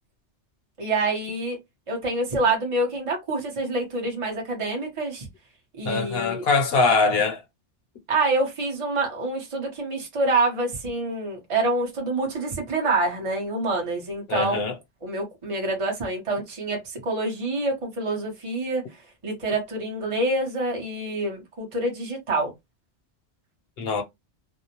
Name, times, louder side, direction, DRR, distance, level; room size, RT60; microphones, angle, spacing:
voice 1, 0.8-1.6 1.9-5.3 5.8-6.5 8.1-14.7 15.0-18.8 19.2-22.5, right 2 dB, 30° right, 0.8 m, -26 dB
voice 2, 5.8-7.4 14.3-14.7 23.8-24.0, left 4 dB, 60° left, 0.9 m, -22 dB
2.6 x 2.0 x 2.8 m
omnidirectional pair, 1.2 m